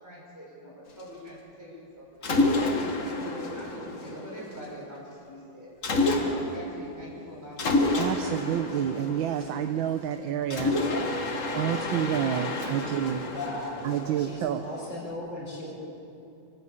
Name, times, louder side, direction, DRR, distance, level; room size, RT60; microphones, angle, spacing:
voice 1, 0.0-2.0 2.6-5.7 6.1-8.0, equal, 10° right, -5 dB, 6.4 m, -43 dB
Mechanisms, 2.2-4.7 5.8-6.7 7.6-9.9 10.5-14.7, left 2 dB, 45° left, 1.9 m, -29 dB
voice 2, 8.0-10.8 11.5-13.3 13.8-14.7, right 10 dB, 90° right, 7 dB, 1.6 m, -29 dB
voice 3, 13.3-15.8, left 2 dB, 80° left, -4 dB, 6.0 m, -37 dB
27.5 x 12.0 x 8.5 m, 2.7 s
omnidirectional pair, 2.1 m